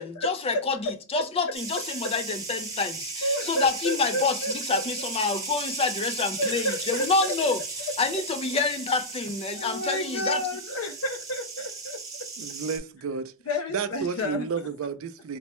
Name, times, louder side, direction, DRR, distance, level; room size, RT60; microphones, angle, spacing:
voice 1, 0.0-7.6 8.0-10.4, left 4 dB, 25° left, 0.4 m, -27 dB
sound 1, 1.5-12.8, right 4 dB, 15° right, 0.9 m, -36 dB
voice 2, 3.2-5.1 6.4-7.3 9.5-12.0 13.5-14.5, equal, 75° left, 0.6 m, -31 dB
voice 3, 12.4-13.3 13.7-15.4, right 6 dB, 70° right, 0.4 m, -31 dB
4.4 x 2.1 x 2.9 m
head